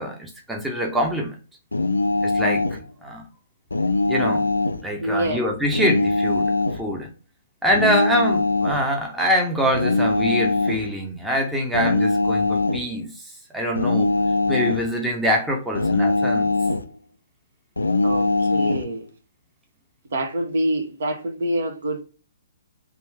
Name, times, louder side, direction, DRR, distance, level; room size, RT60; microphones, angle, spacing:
voice 1, 0.0-1.4 2.2-2.6 3.0-3.2 4.1-4.5 4.8-7.1 7.6-14.1 14.5-16.5, equal, 5° right, 0.7 m, -25 dB
sound 1, 1.7-2.8 3.7-4.8 5.7-6.8 7.7-8.8 9.7-10.9 11.7-12.9 13.7-14.9 15.7-16.9 17.8-18.9, left 3 dB, 75° left, 0.4 m, -21 dB
voice 2, 5.0-5.5 18.0-19.1 20.1-22.0, right 1 dB, 55° right, 0.9 m, -26 dB
3.4 x 2.6 x 3.0 m
figure-of-eight pair, 120°, 0 cm